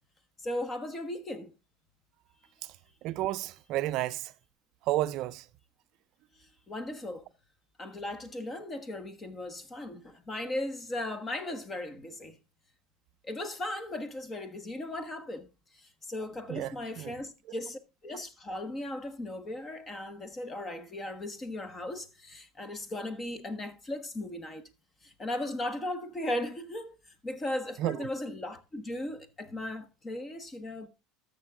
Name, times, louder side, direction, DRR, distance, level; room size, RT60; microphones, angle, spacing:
voice 1, 0.4-1.5 6.4-7.3 7.8-12.4 13.2-15.5 15.7-24.7 25.0-26.9 27.2-30.9, left 1 dB, 20° left, 1.4 m, -37 dB
voice 2, 2.6-4.3 4.8-5.5 16.5-17.2 27.8-28.1, right 15 dB, 55° right, 0.4 m, -32 dB
13.5 x 6.6 x 3.7 m
supercardioid pair, 130°, 0 cm